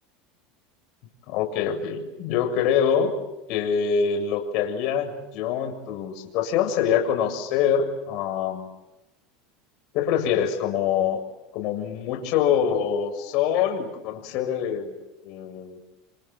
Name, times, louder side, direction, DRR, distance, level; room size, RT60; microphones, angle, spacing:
voice 1, 1.3-3.1 3.5-8.6 9.9-11.2 11.5-14.9 15.2-15.8, left 8 dB, 60° left, 4 dB, 7.0 m, -25 dB
29.0 x 26.5 x 7.7 m, 0.99 s
supercardioid pair, 125°, 0 cm